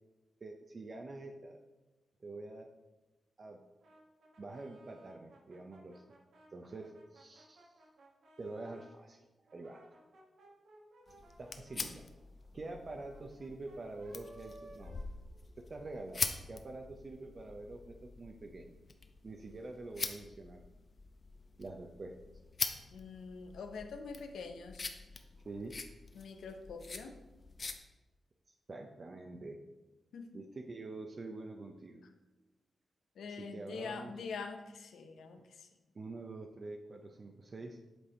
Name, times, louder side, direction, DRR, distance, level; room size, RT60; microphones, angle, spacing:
voice 1, 0.4-1.6 2.2-2.7 3.4-3.6 4.4-6.0 6.5-7.7 8.4-9.2 9.5-9.8 11.4-12.0 12.5-14.9 15.7-18.7 19.2-20.6 21.6-22.2 25.4-25.7 26.1-26.2 28.5-29.6 30.3-32.0 33.3-34.1 35.4-35.5 35.9-37.8, right 2 dB, 50° right, 3 dB, 0.5 m, -46 dB
Brass instrument, 3.8-9.0 9.5-15.8, right 1 dB, 80° right, 1.2 m, -60 dB
sound 1, 11.1-27.8, left 4 dB, 45° left, 0.6 m, -44 dB
voice 2, 22.9-24.9 26.1-27.2 30.1-30.3 33.2-35.7, left 5 dB, 90° left, 5 dB, 0.6 m, -45 dB
7.8 x 3.4 x 4.2 m, 1.1 s
cardioid pair, 65°, 0 cm